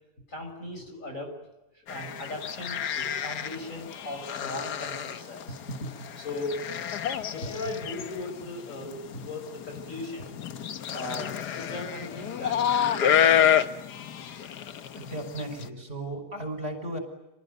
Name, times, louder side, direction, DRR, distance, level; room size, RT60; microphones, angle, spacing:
voice 1, 0.3-1.3 1.9-5.9 6.2-6.6 7.3-10.6 10.9-13.6, left 2 dB, 45° left, 3 dB, 6.3 m, -38 dB
sound 1, 1.9-15.7, left 9 dB, 70° left, 1.7 m, -29 dB
voice 2, 14.9-17.0, right 1 dB, 35° right, 6 dB, 6.1 m, -35 dB
28.5 x 20.0 x 9.4 m, 1.0 s
omnidirectional pair, 1.9 m